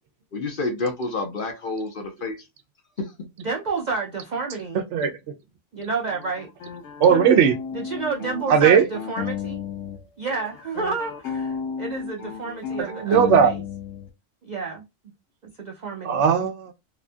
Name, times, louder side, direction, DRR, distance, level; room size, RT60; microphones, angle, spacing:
voice 1, 0.3-2.4, left 3 dB, 55° left, 0.7 m, -28 dB
voice 2, 3.4-4.8 5.7-6.5 7.7-9.6 10.2-13.6 14.4-14.8 15.6-16.2, right 4 dB, 55° right, 0.5 m, -30 dB
sound 1, 6.1-10.0 10.3-14.1, left 7 dB, 75° left, 0.9 m, -33 dB
voice 3, 7.0-7.6 8.5-8.8 12.9-13.5 16.0-16.7, right 7 dB, 75° right, 0.9 m, -17 dB
2.8 x 2.2 x 2.4 m
omnidirectional pair, 1.3 m